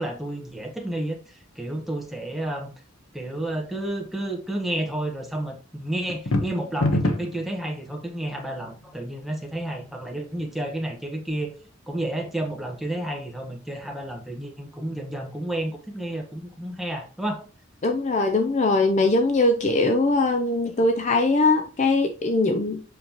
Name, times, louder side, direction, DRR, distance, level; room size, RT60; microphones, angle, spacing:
voice 1, 0.0-2.7 3.1-11.5 11.9-17.4, right 1 dB, ahead, 1.3 m, -31 dB
sound 1, 6.1-7.4, left 1 dB, 80° left, 1.0 m, -23 dB
voice 2, 17.8-22.8, left 2 dB, 35° left, 0.5 m, -21 dB
7.7 x 5.4 x 3.0 m
head